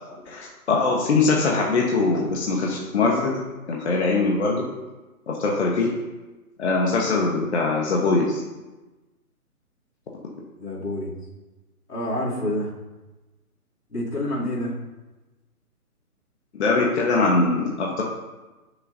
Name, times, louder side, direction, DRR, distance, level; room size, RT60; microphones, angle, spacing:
voice 1, 0.3-3.4 3.7-4.6 5.3-5.9 6.6-8.4 16.5-18.0, left 3 dB, 45° left, -2 dB, 1.4 m, -22 dB
voice 2, 10.6-11.1 11.9-12.7 13.9-14.8, left 1 dB, 85° left, -5 dB, 3.2 m, -28 dB
12.5 x 6.7 x 2.8 m, 1.1 s
hypercardioid pair, 150°, 45 cm